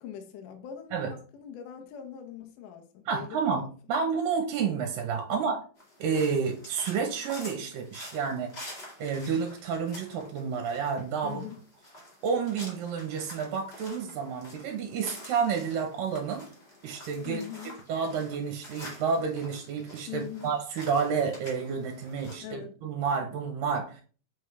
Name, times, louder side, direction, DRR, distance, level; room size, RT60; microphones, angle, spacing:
voice 1, 0.0-3.4 5.3-5.6 11.2-11.6 17.2-17.8 20.1-20.5 22.4-22.7, left 9 dB, 70° left, 2.1 m, -42 dB
voice 2, 3.1-3.6 3.9-5.6 6.0-8.5 9.0-11.4 12.2-16.5 16.8-17.4 17.9-24.0, right 6 dB, 70° right, 2.4 m, -30 dB
sound 1, 5.8-22.3, left 1 dB, 30° left, 1.2 m, -48 dB
8.0 x 5.3 x 3.3 m
omnidirectional pair, 4.6 m